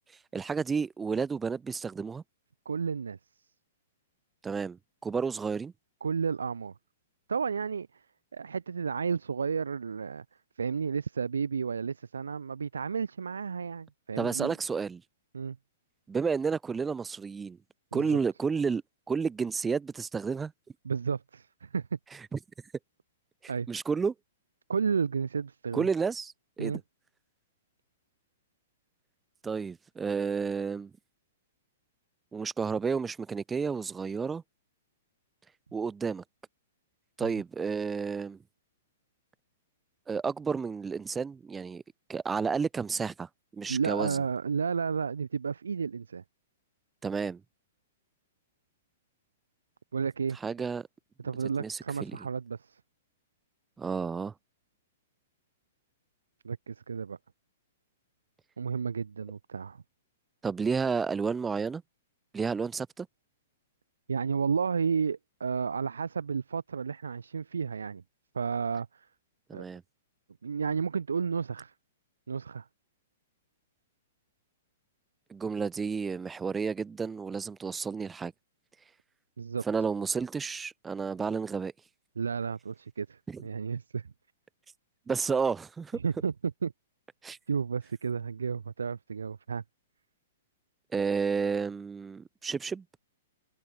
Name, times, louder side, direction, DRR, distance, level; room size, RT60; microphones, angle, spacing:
voice 1, 0.3-2.2 4.4-5.7 14.2-15.0 16.1-17.6 17.9-18.8 19.1-20.5 22.3-22.4 23.7-24.1 25.7-26.7 29.4-30.9 32.3-34.4 35.7-36.2 37.2-38.4 40.1-41.8 42.1-44.2 47.0-47.4 50.4-50.9 51.6-52.2 53.8-54.3 60.4-61.8 62.3-63.1 69.5-69.8 75.3-78.3 79.7-81.7 83.3-83.4 85.1-86.0 87.2-87.4 90.9-92.8, right 5 dB, 10° right, 0.4 m, -31 dB
voice 2, 2.6-3.2 6.0-6.7 7.3-8.0 8.3-10.2 10.6-14.5 15.3-15.6 17.9-18.2 20.8-22.0 23.5-23.7 24.7-25.9 26.6-26.8 37.2-37.3 43.7-46.2 49.9-50.4 51.2-52.8 56.4-57.2 58.6-59.8 64.1-68.0 68.3-69.1 69.5-69.6 70.4-71.7 72.3-72.7 79.4-79.6 82.2-84.1 85.9-86.3 86.6-86.7 87.5-89.6, right 6 dB, 70° right, 0.9 m, -32 dB
figure-of-eight pair, 110°, 0 cm